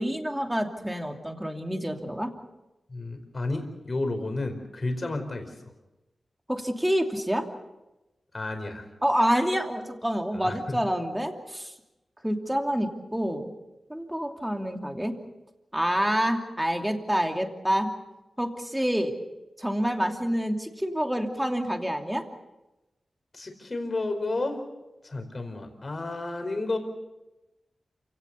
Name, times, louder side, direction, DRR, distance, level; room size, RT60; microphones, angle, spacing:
voice 1, 0.0-2.3 6.5-7.5 9.0-11.7 12.2-13.5 13.9-15.1 15.7-17.9 18.4-19.1 19.6-22.2, equal, 5° right, 3 dB, 2.8 m, -27 dB
voice 2, 2.9-5.5 8.3-8.8 10.3-10.8 23.3-24.6 25.0-26.8, left 2 dB, 45° left, 5 dB, 4.7 m, -31 dB
28.5 x 17.5 x 6.9 m, 1.0 s
wide cardioid pair, 75°, 0 cm